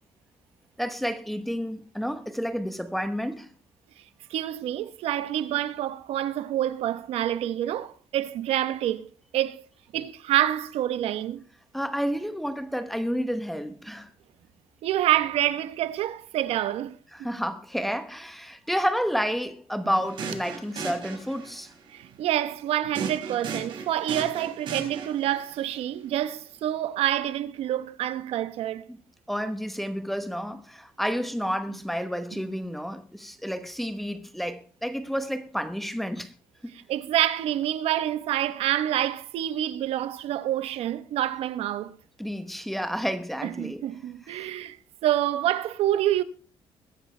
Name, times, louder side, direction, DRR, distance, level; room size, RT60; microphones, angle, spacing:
voice 1, 0.8-3.5 11.7-14.1 17.1-21.7 28.9-29.0 29.3-36.3 42.2-43.9 44.3-44.5, equal, ahead, 1.0 m, -30 dB
voice 2, 4.3-9.1 9.3-9.6 9.9-11.4 14.8-17.0 21.9-28.8 36.9-41.9 43.4-44.8 45.0-46.2, right 12 dB, 90° right, 1.0 m, -27 dB
sound 1, 20.0-21.7 22.9-25.4, right 5 dB, 55° right, 5.1 m, -36 dB
22.0 x 10.0 x 3.3 m
cardioid pair, 180°, 10 cm